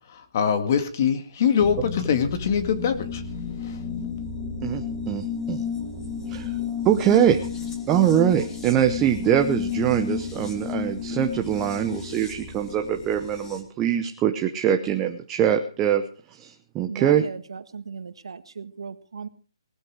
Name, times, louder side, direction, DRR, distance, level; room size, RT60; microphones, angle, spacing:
voice 1, 0.1-3.2 3.6-3.8, left 7 dB, 35° left, 9 dB, 2.0 m, -23 dB
sound 1, 1.6-13.6, left 6 dB, 10° left, 2.5 m, -32 dB
voice 2, 4.6-5.6 6.3-6.5 6.8-7.4 7.9-16.0 16.4-17.2, right 10 dB, 15° right, 5 dB, 0.9 m, -23 dB
voice 3, 16.9-19.3, right 5 dB, 70° right, 11 dB, 1.8 m, -36 dB
19.0 x 13.0 x 4.9 m, 0.40 s
hypercardioid pair, 170°, 3 cm